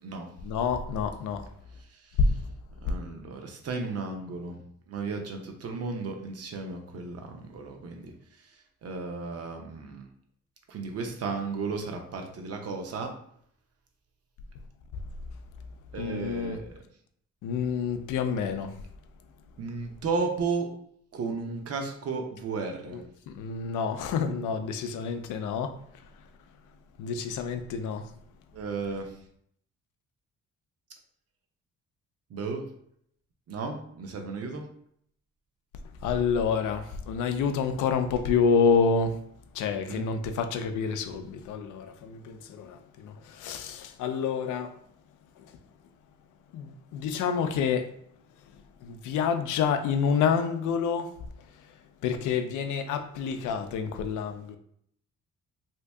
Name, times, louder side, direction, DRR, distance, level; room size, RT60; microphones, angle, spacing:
voice 1, 0.4-1.5 2.2-2.4 16.0-16.6 17.4-18.7 22.9-23.0 23.3-25.7 27.0-28.1 36.0-39.2 39.5-44.8 45.4-45.5 46.5-47.9 48.8-51.1 52.0-54.6, left 6 dB, 85° left, 0.5 m, -28 dB
voice 2, 2.8-4.6 4.9-8.1 8.4-8.5 8.8-10.1 10.7-13.1 15.9-16.8 19.6-20.7 21.1-23.0 28.5-29.1 32.3-32.7 33.5-34.7 39.9-40.1, right 4 dB, 55° right, 0.8 m, -34 dB
2.8 x 2.6 x 3.4 m
cardioid pair, 90°, 30 cm